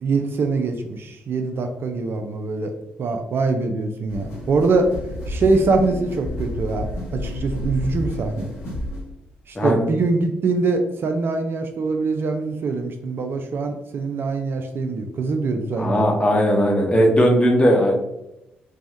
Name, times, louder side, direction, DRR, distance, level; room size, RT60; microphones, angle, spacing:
voice 1, 0.0-2.7 3.0-4.9 5.3-8.5 9.5-16.1, right 3 dB, 50° right, 5 dB, 0.3 m, -23 dB
sound 1, 4.1-9.1, left 1 dB, 70° left, 0.8 m, -31 dB
voice 2, 15.8-18.0, equal, 20° left, 1 dB, 0.8 m, -17 dB
3.3 x 2.1 x 2.5 m, 0.86 s
hypercardioid pair, 45°, 5 cm